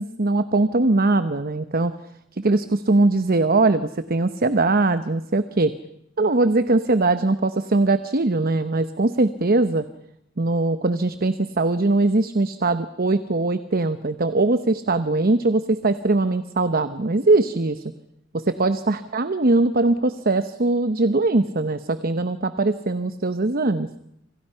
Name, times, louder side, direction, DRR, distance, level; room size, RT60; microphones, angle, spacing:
voice 1, 0.0-1.9 2.3-5.7 6.2-9.8 10.4-17.9 18.3-23.9, right 2 dB, 50° right, 11 dB, 0.9 m, -21 dB
29.5 x 26.5 x 5.7 m, 0.77 s
head